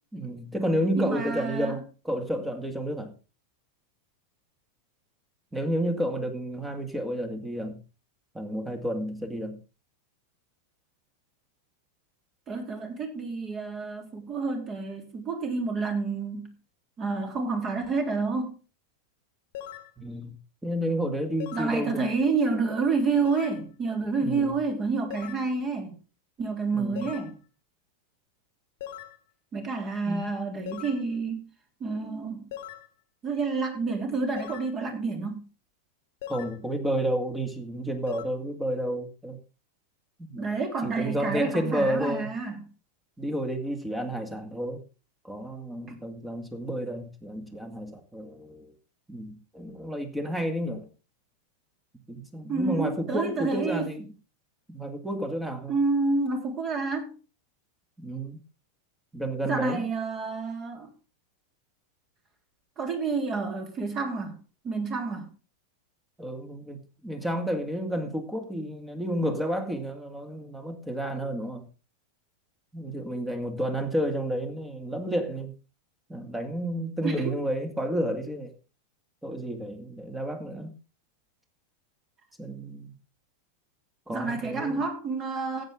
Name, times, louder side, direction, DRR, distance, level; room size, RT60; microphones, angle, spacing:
voice 1, 0.1-3.1 5.5-7.8 8.3-9.6 20.0-22.1 24.2-24.6 26.7-27.1 30.1-30.2 36.2-39.4 40.2-40.5 40.8-42.3 43.2-44.8 45.2-48.7 49.1-50.9 52.1-54.1 54.7-55.7 58.0-58.4 59.1-59.8 66.2-71.7 72.7-75.5 76.1-78.5 79.2-80.7 82.4-83.0 84.1-84.8, equal, 5° right, 2.2 m, -31 dB
voice 2, 1.0-1.8 12.5-16.5 17.0-18.6 21.5-25.9 26.4-27.3 29.5-31.4 31.8-32.4 33.2-35.4 40.4-42.6 45.9-46.0 52.5-53.9 55.7-57.1 59.5-60.9 62.8-64.3 64.6-65.3 77.0-77.3 84.1-85.6, right 4 dB, 25° right, 3.4 m, -29 dB
sound 1, 19.5-19.9 21.4-21.8 23.2-23.6 25.1-25.5 27.0-27.3 28.8-29.2 30.7-31.0 32.5-32.9 34.4-34.7 36.2-36.6 38.1-38.2, left 11 dB, 50° left, 1.4 m, -40 dB
14.5 x 9.0 x 3.7 m
figure-of-eight pair, 90°, 0 cm